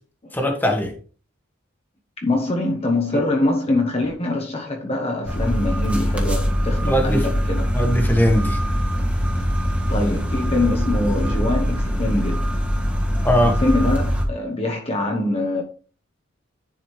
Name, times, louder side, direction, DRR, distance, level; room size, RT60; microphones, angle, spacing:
voice 1, 0.3-0.9 6.8-7.3 7.7-8.6 13.2-13.6, equal, 10° left, 1.5 m, -20 dB
voice 2, 2.2-7.7 9.9-12.5 13.4-15.6, left 2 dB, 30° left, 1.1 m, -23 dB
sound 1, 5.3-14.3, equal, 5° right, 1.3 m, -22 dB
10.5 x 5.0 x 3.2 m
head